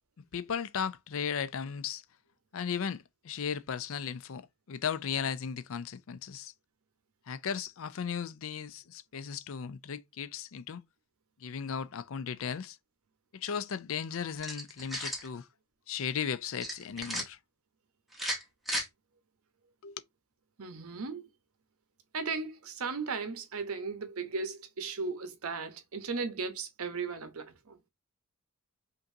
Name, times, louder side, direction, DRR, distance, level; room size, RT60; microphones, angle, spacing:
voice 1, 0.3-2.0 2.5-4.4 4.7-6.5 7.3-10.8 11.4-12.8 13.3-15.5 15.9-17.4 19.8-20.0, left 7 dB, 65° left, 0.5 m, -36 dB
sound 1, 14.4-15.3 16.6-17.2 18.1-18.9, equal, ahead, 1.1 m, -35 dB
voice 2, 20.6-21.3 22.1-27.8, right 4 dB, 85° right, 0.9 m, -36 dB
5.2 x 2.6 x 2.7 m
head